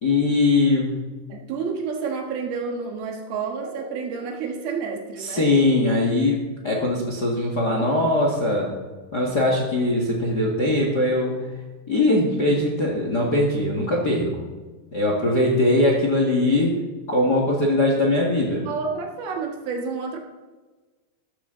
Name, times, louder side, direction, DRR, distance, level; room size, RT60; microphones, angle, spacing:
voice 1, 0.0-1.0 5.2-8.7 9.1-11.3 11.9-14.3 14.9-16.8 17.1-18.7, left 2 dB, 40° left, -1 dB, 1.5 m, -21 dB
voice 2, 1.3-5.7 18.5-20.2, right 5 dB, 70° right, 1 dB, 3.4 m, -30 dB
14.5 x 14.0 x 3.9 m, 1.3 s
omnidirectional pair, 4.8 m